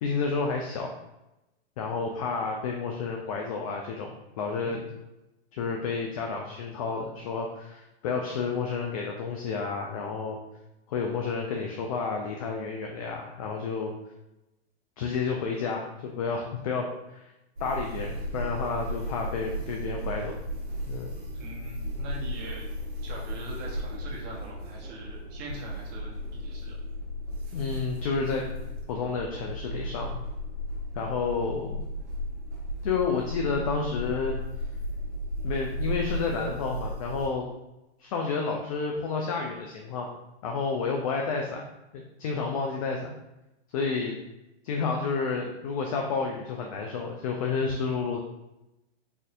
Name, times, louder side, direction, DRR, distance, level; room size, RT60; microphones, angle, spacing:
voice 1, 0.0-0.9 1.8-4.8 5.5-10.4 10.9-13.9 15.0-17.2 17.6-20.3 20.9-21.1 27.5-28.5 28.9-30.2 30.9-31.8 32.8-34.3 35.4-37.4 38.0-40.1 40.4-41.6 41.9-43.2 43.7-44.2 44.6-48.2, left 4 dB, 35° left, 1 dB, 0.4 m, -30 dB
sound 1, 17.6-37.3, equal, 90° right, 1.3 m, -35 dB
voice 2, 21.3-22.7 23.0-26.1 26.4-26.8, right 1 dB, 30° right, -2 dB, 1.1 m, -42 dB
4.2 x 2.6 x 2.6 m, 0.95 s
hypercardioid pair, 135°, 34 cm